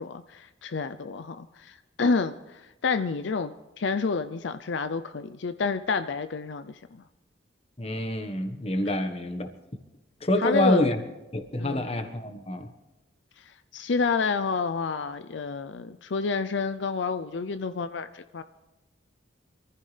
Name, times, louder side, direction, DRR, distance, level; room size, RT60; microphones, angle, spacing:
voice 1, 0.0-7.0 10.4-10.9 11.6-11.9 13.4-18.4, left 4 dB, 70° left, 11 dB, 0.5 m, -29 dB
voice 2, 7.8-9.5 10.2-11.0 11.3-12.7, left 1 dB, 30° left, 7 dB, 1.3 m, -27 dB
25.0 x 14.5 x 3.3 m, 1.1 s
head